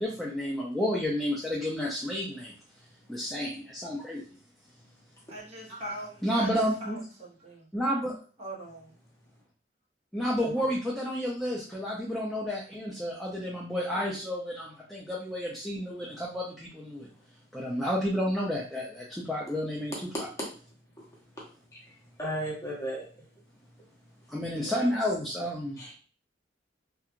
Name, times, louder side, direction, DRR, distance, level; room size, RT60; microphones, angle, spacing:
voice 1, 0.0-2.5 3.1-4.2 6.2-7.0 7.7-8.2 10.1-17.1 17.5-20.3 24.3-25.8, equal, ahead, -6 dB, 0.5 m, -31 dB
voice 2, 5.3-7.7 8.4-8.9 24.5-24.9, right 1 dB, 35° right, -5 dB, 0.9 m, -41 dB
voice 3, 22.2-23.1 25.8-25.9, equal, 15° left, -5 dB, 1.0 m, -34 dB
2.8 x 2.3 x 2.4 m, 0.39 s
head